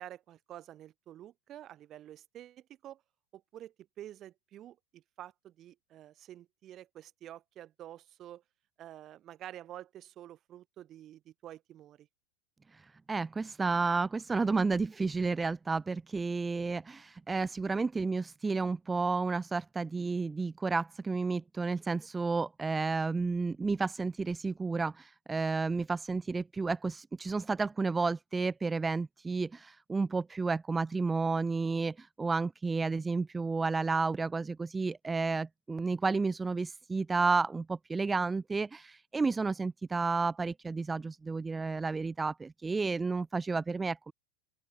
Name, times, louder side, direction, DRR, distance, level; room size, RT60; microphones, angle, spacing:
voice 1, 0.0-3.0 3.3-8.4 8.8-12.1, right 12 dB, 30° right, 6.4 m, -49 dB
voice 2, 12.7-44.1, right 4 dB, 10° right, 0.4 m, -31 dB
open air
supercardioid pair, 150°, 0 cm